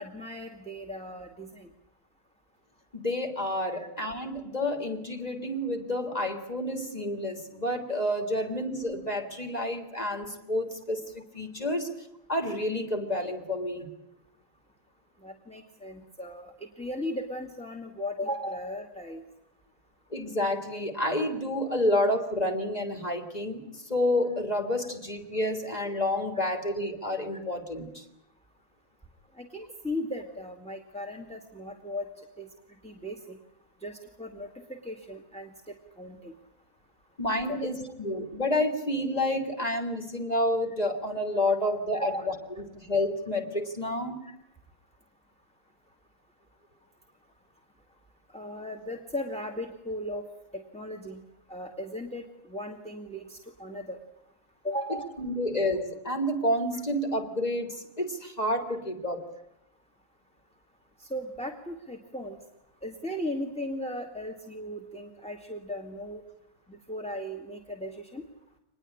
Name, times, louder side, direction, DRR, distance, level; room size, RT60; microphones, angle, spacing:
voice 1, 0.0-1.7 3.7-3.9 8.3-8.4 15.2-19.2 29.4-32.5 32.8-33.4 33.8-35.5 36.0-36.3 37.5-37.7 42.0-42.3 44.2-44.3 48.3-50.2 50.5-51.2 51.5-54.0 54.6-55.1 61.0-62.4 62.8-66.2 66.7-68.2, left 1 dB, 5° left, 5 dB, 2.4 m, -37 dB
voice 2, 2.9-11.9 12.3-13.9 20.1-28.0 37.2-42.1 42.7-44.2 55.2-59.3, left 1 dB, 30° left, 5 dB, 3.7 m, -29 dB
25.0 x 21.0 x 8.7 m, 0.84 s
omnidirectional pair, 1.4 m